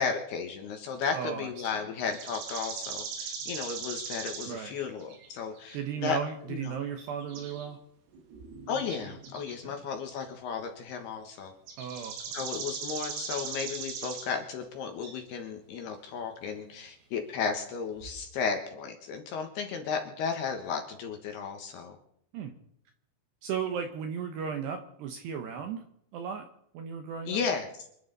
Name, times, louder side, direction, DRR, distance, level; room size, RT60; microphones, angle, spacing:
voice 1, 0.0-6.2 6.5-6.8 8.7-11.5 12.3-22.0 27.3-27.9, left 6 dB, 65° left, 4 dB, 2.8 m, -34 dB
voice 2, 1.1-1.5 4.5-4.7 5.7-7.8 9.6-9.8 11.8-12.5 22.3-22.5 23.4-25.8 26.1-26.5 26.7-27.4, right 7 dB, 75° right, 6 dB, 2.6 m, -35 dB
sound 1, 2.1-4.6 4.8-5.3 5.6-5.8 7.0-7.7 8.1-9.5 10.1-10.2 11.7-14.3 15.0-15.2 18.0-18.1, right 6 dB, 90° right, 5.5 m, -39 dB
27.5 x 11.0 x 4.0 m, 0.73 s
omnidirectional pair, 6.0 m